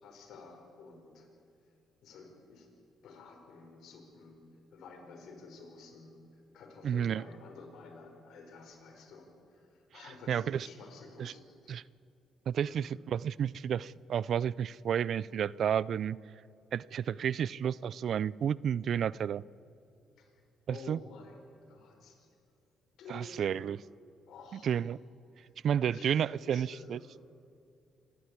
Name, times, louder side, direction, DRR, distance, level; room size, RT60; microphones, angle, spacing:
voice 1, 0.0-1.3 1.6-1.7 2.0-2.7 3.0-4.4 4.7-11.7 12.7-13.0 17.1-17.3 20.2-20.3 20.7-22.4 23.0-23.6 24.3-24.8 25.4-25.5 25.8-27.1, left 4 dB, 75° left, 5.2 m, -51 dB
voice 2, 6.8-7.2 10.3-10.7 11.2-11.3 11.7-11.8 12.5-16.2 16.7-19.4 20.7-21.0 23.1-23.8 24.6-25.0 25.6-27.0, right 8 dB, 65° right, 0.4 m, -31 dB
26.5 x 13.5 x 9.6 m
cardioid pair, 90°, 0 cm